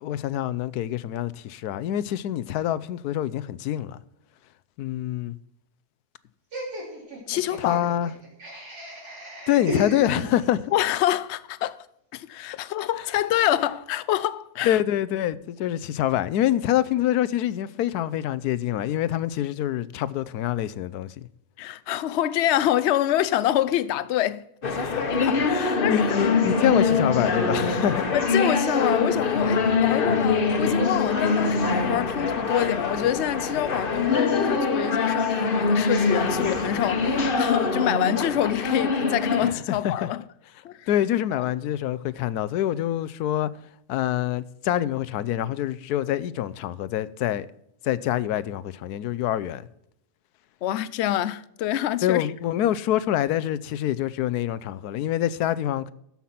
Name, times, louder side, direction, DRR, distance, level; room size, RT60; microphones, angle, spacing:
voice 1, 0.0-4.0 4.8-5.4 7.6-8.1 9.5-10.7 14.6-21.3 25.2-28.1 39.4-40.1 40.9-43.5 43.9-47.5 47.8-49.7 52.0-55.9, left 12 dB, 80° left, 1.2 m, -26 dB
Laughter, 6.5-10.8, left 1 dB, 85° right, 4.1 m, -35 dB
voice 2, 7.3-7.8 10.7-11.8 12.1-14.8 21.6-25.4 25.8-26.2 28.1-40.2 40.6-40.9 41.4-41.5 50.6-52.3, left 12 dB, 65° left, 0.7 m, -26 dB
sound 1, 24.6-39.5, left 4 dB, 40° left, 1.2 m, -24 dB
13.5 x 5.8 x 5.7 m
omnidirectional pair, 1.7 m